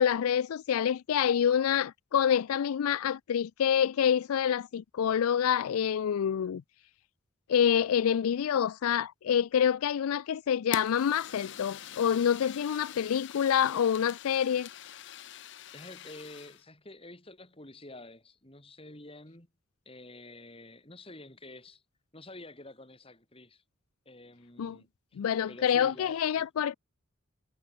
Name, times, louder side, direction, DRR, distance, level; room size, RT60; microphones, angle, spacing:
voice 1, 0.0-6.6 7.5-14.7 24.6-24.8 25.2-26.8, left 8 dB, 85° left, 0.4 m, -27 dB
Fire, 10.7-16.6, left 8 dB, 55° left, 0.7 m, -44 dB
voice 2, 15.7-19.5 19.8-21.8 22.1-23.6 24.0-24.9 25.5-26.5, left 2 dB, 25° left, 3.3 m, -49 dB
head